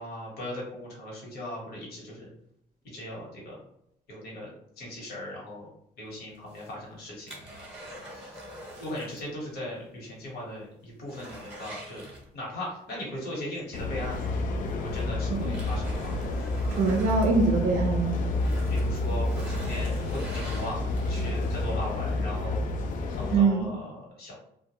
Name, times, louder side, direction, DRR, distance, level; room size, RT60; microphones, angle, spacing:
voice 1, 0.0-2.3 2.9-3.6 4.1-5.7 6.0-7.3 7.7-7.9 8.1-8.4 8.8-12.0 12.3-14.3 14.7-16.1 18.7-20.8 21.1-22.6 23.1-24.4, left 1 dB, 70° left, -3 dB, 1.2 m, -38 dB
sound 1, 6.3-9.3 9.6-9.7 10.2-10.3 10.6-12.7 14.1-14.2 14.8-17.9 18.3-21.6 22.1-22.2, equal, 5° right, 0.9 m, -44 dB
sound 2, 13.7-23.4, left 2 dB, 55° left, 0.4 m, -29 dB
voice 2, 16.7-18.2 23.3-23.7, right 4 dB, 50° right, 0 dB, 0.4 m, -24 dB
2.2 x 2.2 x 2.8 m, 0.76 s
cardioid pair, 110°, 17 cm